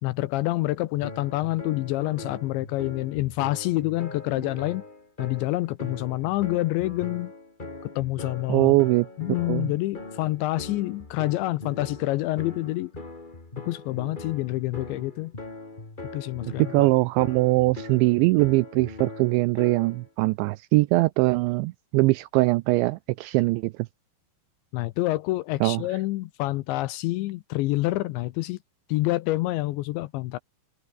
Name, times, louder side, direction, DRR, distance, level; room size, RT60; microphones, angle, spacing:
voice 1, 0.0-4.8 5.2-7.3 7.8-8.7 9.2-12.9 13.6-15.3 16.1-16.9 24.7-28.6 28.9-30.4, left 18 dB, 80° left, 2.8 m, -27 dB
sound 1, 1.0-20.1, left 2 dB, 25° left, 1.0 m, -41 dB
voice 2, 8.5-9.1 9.5-9.7 16.7-23.7 25.6-25.8, right 21 dB, 85° right, 2.6 m, -22 dB
omnidirectional pair, 5.7 m